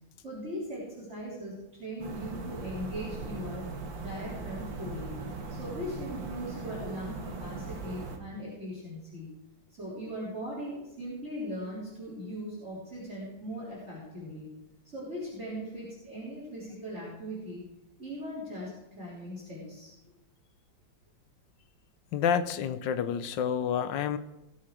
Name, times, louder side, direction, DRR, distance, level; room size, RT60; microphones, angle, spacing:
voice 1, 0.2-3.7 4.0-5.2 5.5-9.4 9.7-14.5 14.9-17.7 18.0-19.9, equal, 35° right, -7 dB, 4.1 m, -39 dB
sound 1, 2.0-8.2, right 3 dB, 75° right, 2.1 m, -39 dB
voice 2, 22.1-24.2, left 8 dB, 75° left, 12 dB, 1.4 m, -29 dB
18.0 x 7.6 x 4.9 m, 0.94 s
omnidirectional pair, 2.1 m